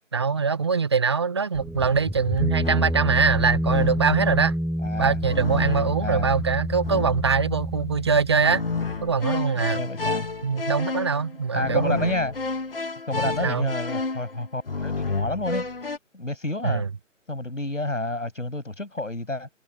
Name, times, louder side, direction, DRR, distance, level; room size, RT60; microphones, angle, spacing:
voice 1, 0.1-4.5 5.0-8.6 9.0-9.8 10.4-12.1 13.4-13.7 16.6-16.9, right 5 dB, 20° right, 1.3 m, -23 dB
sound 1, 1.5-9.0, equal, ahead, 0.4 m, -28 dB
sound 2, 2.6-3.1 3.7-4.2 5.2-6.2 6.8-7.4 8.4-16.0, left 3 dB, 45° left, 2.9 m, -31 dB
voice 2, 4.8-5.2 6.0-6.4 9.5-10.3 11.5-12.3 13.1-15.7 16.1-16.8 17.3-19.5, left 2 dB, 75° left, 7.6 m, -30 dB
figure-of-eight pair, 155°, 38 cm